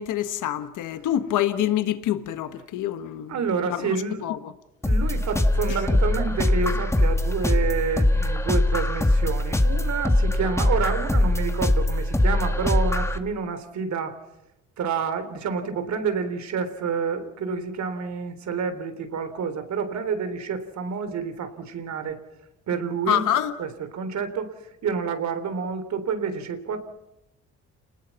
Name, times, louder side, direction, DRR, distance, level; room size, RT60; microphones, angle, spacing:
voice 1, 0.0-3.4 3.7-4.0 4.2-4.5 23.1-23.5, left 11 dB, 85° left, 1.4 m, -26 dB
voice 2, 3.3-4.2 4.8-14.2 14.8-22.2 22.7-23.2 23.6-24.5 24.8-26.8, right 5 dB, 65° right, 3.6 m, -28 dB
sound 1, 4.8-13.2, left 1 dB, 10° left, 1.8 m, -22 dB
29.5 x 19.5 x 5.9 m
cardioid pair, 90°, 30 cm